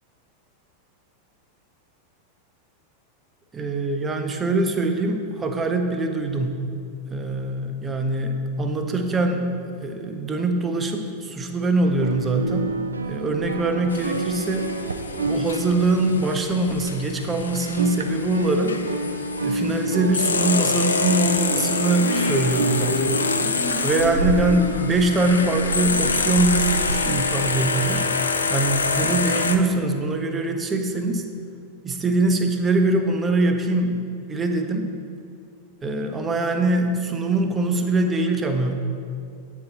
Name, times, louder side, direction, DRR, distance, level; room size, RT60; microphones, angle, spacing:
voice 1, 3.5-6.6 7.1-12.7 13.1-14.7 15.3-18.8 19.4-23.3 23.8-28.1 28.5-31.2 31.8-34.9 35.8-38.8, right 2 dB, 20° right, 5 dB, 0.6 m, -23 dB
sound 1, 12.0-17.4 17.6-29.1, right 2 dB, 75° right, 0.4 m, -30 dB
sound 2, 13.9-29.6, left 4 dB, 75° left, 0.4 m, -27 dB
sound 3, 21.8-27.2, left 2 dB, 55° left, 1.1 m, -31 dB
8.5 x 4.5 x 4.1 m, 2.3 s
figure-of-eight pair, 90°, 0 cm